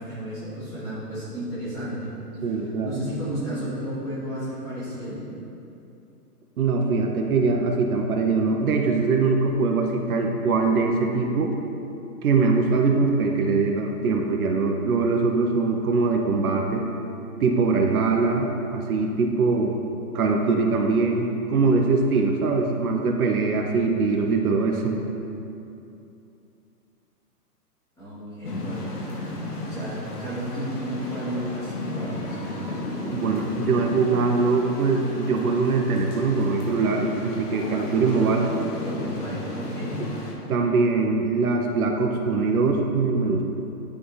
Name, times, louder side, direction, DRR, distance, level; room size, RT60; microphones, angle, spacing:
voice 1, 0.0-2.1 2.4-2.5 2.8-5.2 28.0-28.9 29.7-32.8 38.1-38.4 38.8-40.1, right 1 dB, 5° left, -12 dB, 1.4 m, -33 dB
voice 2, 2.4-3.0 6.6-11.5 12.2-16.8 17.4-19.7 20.1-25.0 33.0-38.5 40.0-40.1 40.5-43.4, right 4 dB, 65° right, 2 dB, 0.8 m, -22 dB
sound 1, 28.4-40.3, left 2 dB, 75° left, 1.5 m, -34 dB
10.0 x 3.6 x 4.0 m, 2.8 s
hypercardioid pair, 165°, 47 cm